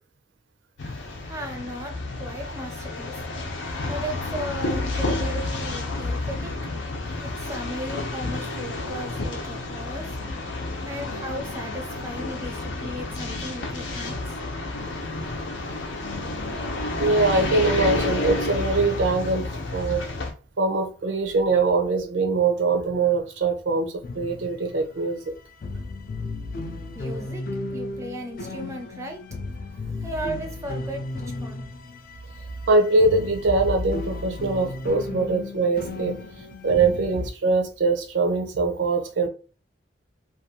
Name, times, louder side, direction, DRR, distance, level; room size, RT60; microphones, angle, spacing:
sound 1, 0.8-20.3, left 2 dB, 85° left, 0.6 m, -30 dB
voice 1, 1.2-3.2 3.9-6.5 7.2-14.2 26.9-29.2 30.0-31.7 35.3-35.4 36.5-36.6, right 1 dB, 15° right, 0.4 m, -36 dB
voice 2, 17.0-20.0 20.6-25.3 32.7-36.2 36.6-39.3, right 3 dB, 85° right, 0.6 m, -23 dB
sound 2, 24.0-25.0 25.3-25.4 25.5-37.3, left 2 dB, 50° left, 0.3 m, -34 dB
2.6 x 2.3 x 2.7 m
head